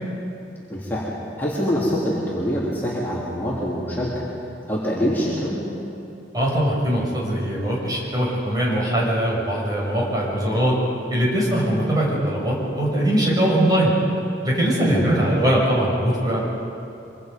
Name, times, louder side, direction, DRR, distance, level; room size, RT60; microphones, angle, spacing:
voice 1, 0.7-1.1 1.4-4.2 4.7-5.6 14.9-15.1, equal, 10° left, -7 dB, 3.5 m, -24 dB
voice 2, 6.3-10.8 11.1-13.9 14.4-16.4, right 1 dB, 25° right, -4 dB, 6.2 m, -21 dB
25.0 x 25.0 x 5.4 m, 2.7 s
head